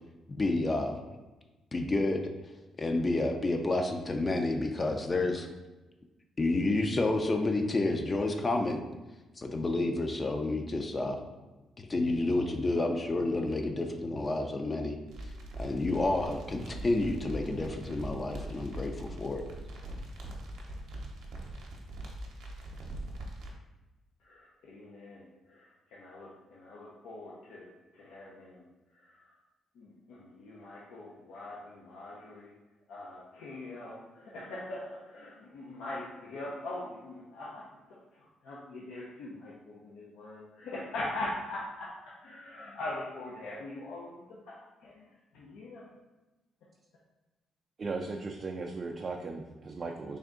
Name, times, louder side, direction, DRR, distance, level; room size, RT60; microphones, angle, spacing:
voice 1, 0.4-0.9 1.7-2.2 2.8-5.5 6.4-8.8 9.4-11.2 11.9-15.0 15.6-19.4, left 2 dB, 30° left, 3 dB, 0.4 m, -29 dB
sound 1, 15.1-23.5, right 1 dB, 80° right, 0.7 m, -42 dB
voice 2, 24.2-27.7 27.9-28.6 29.1-29.2 29.8-32.5 32.9-45.1 45.3-45.8, left 2 dB, 85° left, -5 dB, 0.6 m, -42 dB
voice 3, 47.8-50.2, right 3 dB, 40° right, 2 dB, 0.3 m, -37 dB
3.4 x 2.6 x 3.6 m, 1.1 s
cardioid pair, 90°, 0 cm